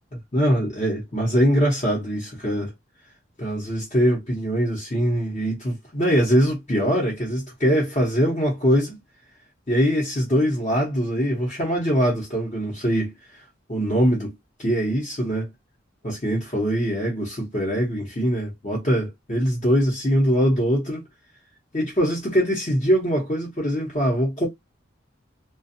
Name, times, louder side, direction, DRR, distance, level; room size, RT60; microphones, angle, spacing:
voice 1, 0.3-2.7 3.4-9.0 9.7-13.1 13.7-14.3 14.6-15.5 16.0-21.0 21.7-24.5, equal, 35° left, 0.9 m, -22 dB
2.5 x 2.3 x 2.6 m
head